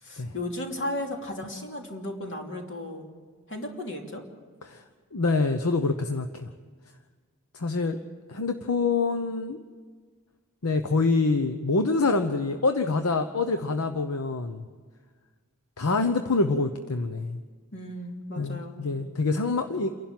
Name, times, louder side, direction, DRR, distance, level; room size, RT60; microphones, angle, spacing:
voice 1, 0.0-3.1 3.5-4.2 17.7-18.9, left 1 dB, 55° left, 1 dB, 3.0 m, -35 dB
voice 2, 5.1-6.5 7.5-8.0 8.3-9.6 10.6-14.6 15.8-17.4 18.4-19.9, left 3 dB, 75° left, 7 dB, 0.9 m, -26 dB
29.0 x 11.5 x 7.7 m, 1.5 s
head